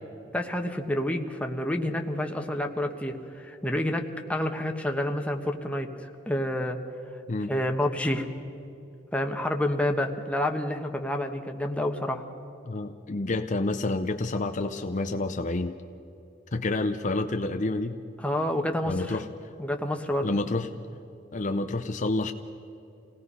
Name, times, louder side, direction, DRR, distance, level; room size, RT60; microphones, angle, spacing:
voice 1, 0.3-5.9 6.3-6.8 7.5-8.2 9.1-12.2 18.2-19.2 19.6-20.3, left 1 dB, 5° left, 3 dB, 1.3 m, -28 dB
voice 2, 12.7-15.8 16.5-18.0 18.9-19.3 20.2-20.7 21.3-22.3, left 2 dB, 40° left, 6 dB, 0.7 m, -28 dB
27.0 x 18.5 x 5.6 m, 2.7 s
head